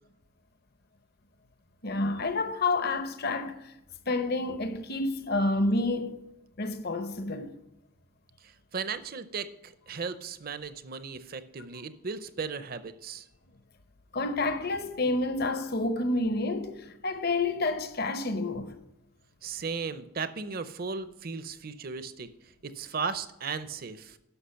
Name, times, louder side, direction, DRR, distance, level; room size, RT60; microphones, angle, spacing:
voice 1, 1.8-3.7 4.1-6.2 6.6-7.5 14.1-18.7, left 2 dB, 50° left, 0.8 m, -29 dB
voice 2, 8.4-13.3 19.4-22.3 22.6-24.2, right 5 dB, 45° right, 0.6 m, -36 dB
11.5 x 6.0 x 5.7 m
head